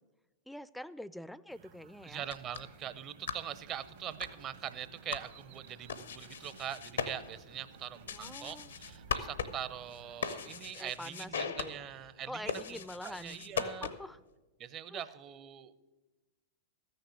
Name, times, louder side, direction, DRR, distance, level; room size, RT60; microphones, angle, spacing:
voice 1, 0.5-2.2 8.1-8.7 10.8-11.8 12.2-14.2 14.9-15.0, left 1 dB, ahead, 18 dB, 0.4 m, -46 dB
sound 1, 1.5-10.6, right 8 dB, 60° right, 1.1 m, -60 dB
voice 2, 2.0-13.9 14.6-15.9, right 10 dB, 35° right, 14 dB, 0.6 m, -43 dB
sound 2, 2.1-14.2, left 7 dB, 80° left, 0.8 m, -41 dB
sound 3, 3.5-9.9, right 4 dB, 75° right, 1.9 m, -59 dB
14.0 x 6.6 x 7.9 m, 1.2 s
hypercardioid pair, 100°, 0 cm